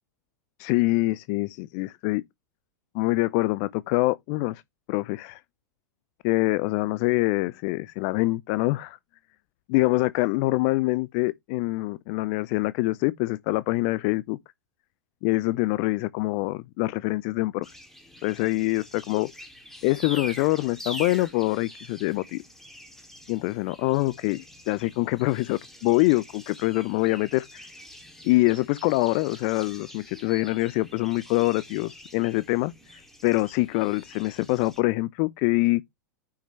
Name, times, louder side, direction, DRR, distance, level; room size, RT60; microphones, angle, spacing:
voice 1, 0.6-2.2 2.9-4.6 4.9-5.4 6.2-9.0 9.7-14.4 15.2-17.7 18.2-19.3 19.8-22.4 23.3-27.7 28.2-35.8, left 21 dB, 45° left, 0.5 m, -25 dB
sound 1, 17.6-34.8, equal, 5° left, 2.5 m, -45 dB
9.7 x 6.1 x 3.1 m
figure-of-eight pair, 95°, 10 cm